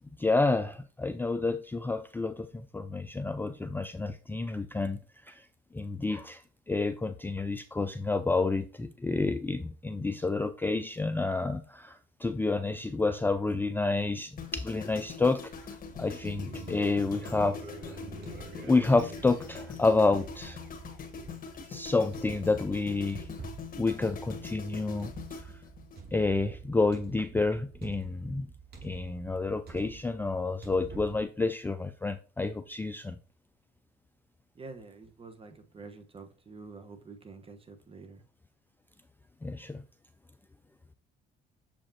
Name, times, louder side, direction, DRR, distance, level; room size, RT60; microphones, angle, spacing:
voice 1, 0.2-5.0 5.3-5.5 5.7-17.6 17.9-18.0 18.6-20.6 21.7-23.2 23.8-25.5 26.1-28.5 28.8-33.2 39.4-39.8, left 3 dB, 10° left, 0.4 m, -29 dB
sound 1, 14.4-26.6 26.8-27.1, left 6 dB, 50° left, 1.5 m, -43 dB
sound 2, 15.5-31.2, right 4 dB, 55° right, 2.5 m, -47 dB
voice 2, 34.5-38.2, right 4 dB, 30° right, 1.2 m, -47 dB
7.0 x 5.1 x 2.8 m
supercardioid pair, 80°, 19 cm